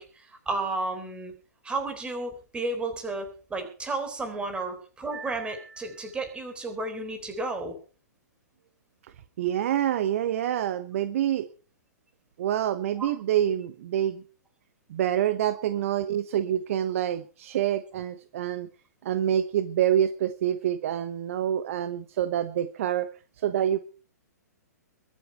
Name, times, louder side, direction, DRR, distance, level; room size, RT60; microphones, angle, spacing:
voice 1, 0.0-1.3 1.6-7.8 13.0-13.1, right 2 dB, 10° right, 6 dB, 3.8 m, -32 dB
voice 2, 9.4-11.5 12.4-14.2 14.9-18.7 19.0-23.1 23.4-23.8, right 10 dB, 50° right, 12 dB, 1.0 m, -26 dB
22.5 x 8.4 x 4.7 m, 0.38 s
figure-of-eight pair, 115°, 9 cm